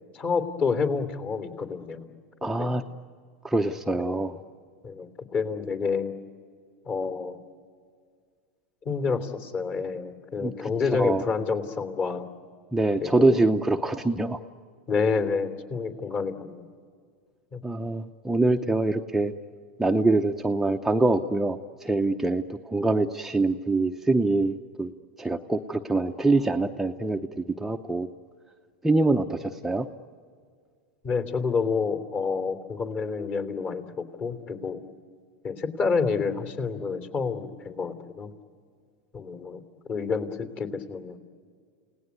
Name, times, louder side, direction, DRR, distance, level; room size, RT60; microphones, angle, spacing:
voice 1, 0.1-2.1 2.4-2.7 4.0-4.4 4.8-6.1 6.8-7.4 8.8-12.3 13.0-13.4 14.9-16.6 17.5-17.6 31.0-33.8 34.2-34.8 35.4-38.3 39.1-39.6 39.9-41.2, left 5 dB, 35° left, 8 dB, 3.1 m, -29 dB
voice 2, 2.4-2.8 3.4-4.4 10.4-11.2 12.7-14.4 17.6-19.3 19.8-24.9 25.2-28.1 28.8-29.9, right 2 dB, 5° right, 4 dB, 0.8 m, -24 dB
30.0 x 18.0 x 9.5 m, 2.1 s
hypercardioid pair, 110°, 5 cm